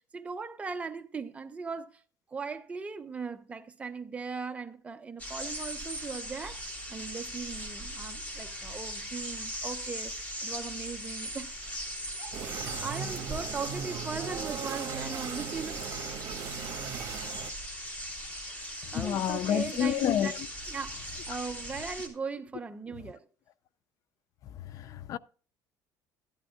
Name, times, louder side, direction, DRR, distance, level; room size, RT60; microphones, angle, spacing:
voice 1, 0.0-2.0 2.3-11.6 12.2-15.9 18.5-18.6 18.9-20.3 20.7-23.3, right 5 dB, 15° right, 0.8 m, -39 dB
sound 1, 5.2-22.1, equal, 20° left, 3.1 m, -39 dB
sound 2, 12.3-17.5, right 8 dB, 55° right, 1.4 m, -38 dB
voice 2, 18.9-20.4 24.7-25.2, left 10 dB, 50° left, 0.4 m, -29 dB
13.5 x 11.5 x 2.3 m
cardioid pair, 140°, 7 cm